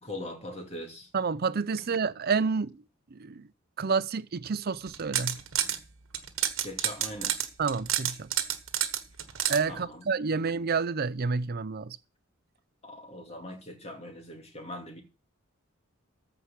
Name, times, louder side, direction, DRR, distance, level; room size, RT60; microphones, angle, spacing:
voice 1, 0.0-1.1 1.8-1.9 6.6-7.5 9.7-10.0 10.3-10.4 12.8-15.0, left 1 dB, 30° left, 2.8 m, -41 dB
voice 2, 1.1-2.8 3.1-3.4 3.8-5.4 7.6-8.3 9.5-12.0, right 5 dB, 50° right, 0.6 m, -29 dB
sound 1, 4.9-5.8 6.1-9.6, right 11 dB, 75° right, 1.3 m, -29 dB
14.0 x 4.9 x 7.3 m
head